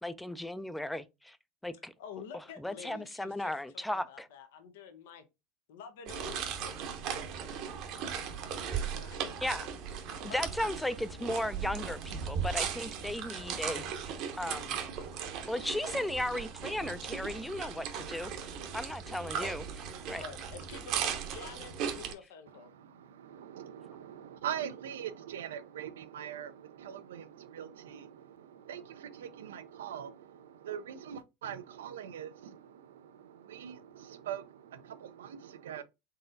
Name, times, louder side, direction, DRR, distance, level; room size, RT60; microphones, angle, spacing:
voice 1, 0.0-1.4 1.6-1.9 2.6-4.3 9.4-9.7 10.2-14.7 15.4-18.3 18.7-19.6 20.1-20.2, left 1 dB, 5° left, 0.5 m, -36 dB
voice 2, 2.0-5.2 5.7-6.7 7.1-7.2 8.8-9.7 10.3-10.5 19.2-19.5 20.2-22.7, left 6 dB, 75° left, 0.8 m, -49 dB
sound 1, 6.1-22.1, right 7 dB, 60° right, 0.9 m, -37 dB
voice 3, 22.5-35.8, right 9 dB, 85° right, 0.5 m, -43 dB
4.0 x 3.7 x 2.6 m
hypercardioid pair, 85°, 0 cm